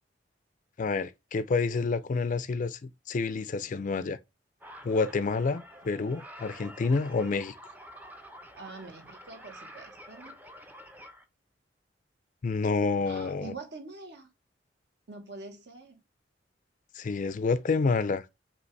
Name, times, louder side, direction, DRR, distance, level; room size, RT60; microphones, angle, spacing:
voice 1, 0.8-4.2 4.8-7.5 12.4-13.5 17.0-18.2, left 4 dB, 45° left, 0.4 m, -28 dB
sound 1, 4.6-11.2, equal, 10° right, 0.5 m, -48 dB
voice 2, 8.5-10.4 13.0-14.3 15.1-16.0, right 3 dB, 70° right, 1.2 m, -45 dB
5.3 x 2.9 x 3.1 m
head